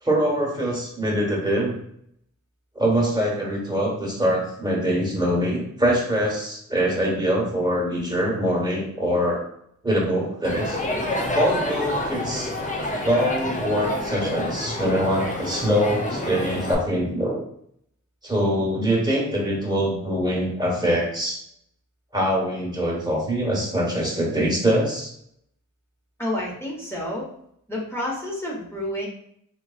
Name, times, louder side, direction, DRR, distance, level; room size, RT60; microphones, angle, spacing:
voice 1, 0.0-1.8 2.7-9.4 9.8-10.8 11.3-12.5 13.0-17.4 18.2-21.4 22.1-25.1, equal, 15° right, -3 dB, 1.3 m, -23 dB
Crowd, 10.4-16.7, left 1 dB, 25° left, 0.6 m, -28 dB
voice 2, 26.2-27.3 27.7-29.1, left 1 dB, 10° left, -4 dB, 1.1 m, -29 dB
4.0 x 3.0 x 2.5 m, 0.70 s
wide cardioid pair, 85°, 32 cm